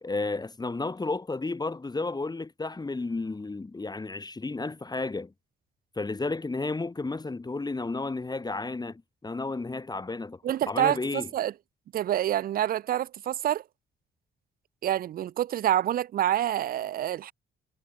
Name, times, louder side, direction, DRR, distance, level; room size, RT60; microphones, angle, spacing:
voice 1, 0.0-5.3 6.0-10.4 10.7-11.3, left 3 dB, 20° left, 1.8 m, -32 dB
voice 2, 10.4-11.5 11.9-13.6 14.8-17.3, right 11 dB, 50° right, 0.4 m, -27 dB
cardioid pair, 90°, 20 cm